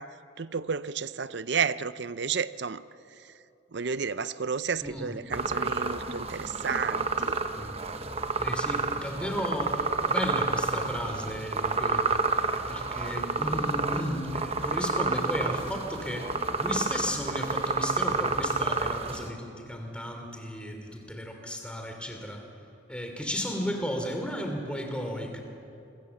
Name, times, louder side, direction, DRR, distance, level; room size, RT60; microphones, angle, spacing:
voice 1, 0.0-2.8 3.7-7.4, right 6 dB, 60° right, 0.6 m, -32 dB
voice 2, 4.8-5.1 7.5-7.8 8.4-22.4 22.9-25.4, equal, 5° left, 3.0 m, -34 dB
sound 1, 5.3-19.3, right 4 dB, 30° right, 1.0 m, -30 dB
26.5 x 23.0 x 7.2 m
head